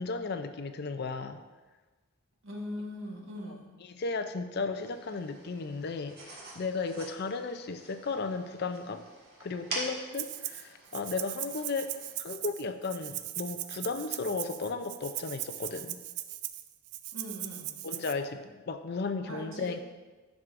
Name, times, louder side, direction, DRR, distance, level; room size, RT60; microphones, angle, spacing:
voice 1, 0.0-1.4 3.5-9.0 9.4-11.9 12.2-16.0 17.8-19.8, left 4 dB, 45° left, 9 dB, 0.4 m, -35 dB
voice 2, 2.4-3.7 17.1-17.7 19.2-19.8, left 1 dB, 65° right, -1 dB, 1.3 m, -40 dB
sound 1, 4.8-12.1, right 2 dB, 45° right, 1.7 m, -45 dB
Rattle (instrument), 10.1-10.6 10.9-18.1, right 14 dB, 85° right, 0.4 m, -39 dB
11.0 x 6.1 x 2.5 m, 1.3 s
head